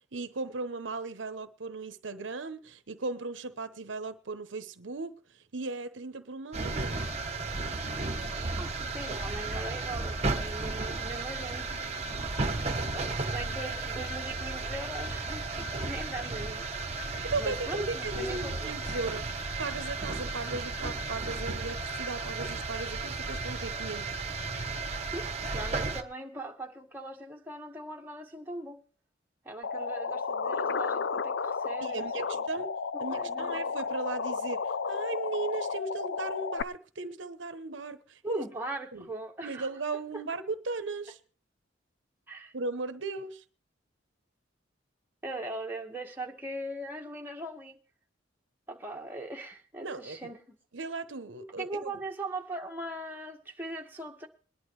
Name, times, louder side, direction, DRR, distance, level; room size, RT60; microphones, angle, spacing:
voice 1, 0.1-7.0 17.2-24.1 31.8-38.4 38.9-39.1 39.4-41.2 42.5-43.4 49.8-50.2 50.7-51.9, right 3 dB, 85° right, 0.9 m, -37 dB
sound 1, 6.5-26.0, right 3 dB, 35° right, 1.2 m, -34 dB
voice 2, 8.6-11.7 12.9-16.7 17.4-18.7 25.1-28.8 29.4-32.4 33.1-33.5 38.2-39.7 40.1-40.2 42.3-42.5 45.2-47.8 48.7-50.6 51.6-54.3, right 2 dB, 10° right, 1.7 m, -40 dB
sound 2, 29.6-36.6, left 5 dB, 70° left, 0.5 m, -32 dB
22.0 x 11.0 x 3.2 m
head